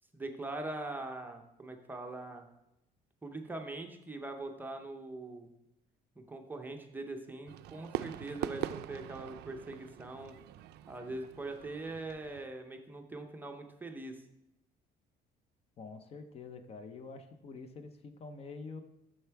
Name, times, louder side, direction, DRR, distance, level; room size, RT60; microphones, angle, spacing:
voice 1, 0.1-2.5 3.2-5.5 6.2-10.3 10.9-14.2, right 2 dB, 10° right, 3 dB, 0.6 m, -42 dB
Fireworks, 7.5-12.5, right 13 dB, 80° right, 0.4 m, -42 dB
voice 2, 15.8-18.8, left 4 dB, 35° left, 9 dB, 0.6 m, -46 dB
6.7 x 6.7 x 4.6 m, 0.85 s
cardioid pair, 175°, 17 cm